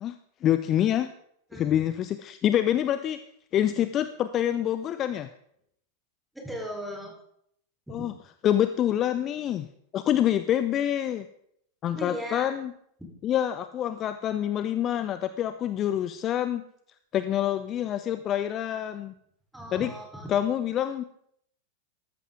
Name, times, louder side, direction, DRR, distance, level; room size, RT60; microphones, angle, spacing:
voice 1, 0.0-1.1 1.6-3.2 3.5-5.3 7.9-8.1 8.4-9.7 9.9-11.3 11.8-12.7 13.2-16.6 17.1-19.1 19.7-19.9 20.3-21.0, left 11 dB, 30° left, 11 dB, 0.5 m, -26 dB
voice 2, 6.3-7.1 7.9-8.1 12.0-12.5 13.0-13.1 19.5-20.3, equal, 5° right, 0 dB, 3.8 m, -37 dB
13.5 x 13.5 x 3.7 m, 0.69 s
figure-of-eight pair, 90°, 0 cm